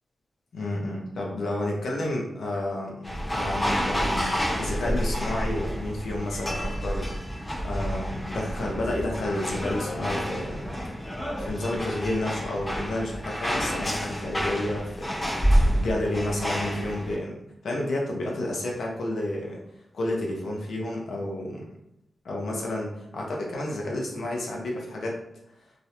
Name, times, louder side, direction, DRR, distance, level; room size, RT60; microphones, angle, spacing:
voice 1, 0.5-10.7 11.4-15.3 15.6-19.6 19.9-21.7 22.2-25.2, left 1 dB, 80° left, -1 dB, 0.6 m, -31 dB
sound 1, 3.0-17.1, equal, 25° left, 0.9 m, -29 dB
2.4 x 2.0 x 2.9 m, 0.81 s
cardioid pair, 80°, 0 cm